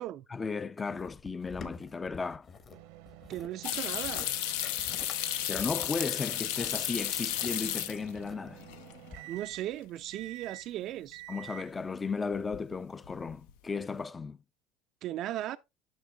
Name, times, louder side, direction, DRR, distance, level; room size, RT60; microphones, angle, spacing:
voice 1, 0.3-2.5 3.7-3.8 5.5-8.6 11.3-14.4, left 4 dB, 20° left, 0.4 m, -35 dB
sound 1, 0.9-2.8 3.1-3.5 3.9-4.3 4.6-5.2 5.6-7.5 8.1-8.7 9.1-9.2, left 5 dB, 40° left, 1.2 m, -47 dB
sound 2, 2.7-11.9, right 17 dB, 75° right, 0.7 m, -50 dB
voice 2, 3.3-4.3 9.3-11.2 15.0-15.6, right 13 dB, 55° right, 0.3 m, -37 dB
sound 3, 3.6-8.3 8.6-9.2 9.5-9.6 12.3-12.7 13.0-13.5, left 12 dB, 80° left, 0.5 m, -33 dB
10.5 x 6.2 x 2.3 m
supercardioid pair, 95°, 0 cm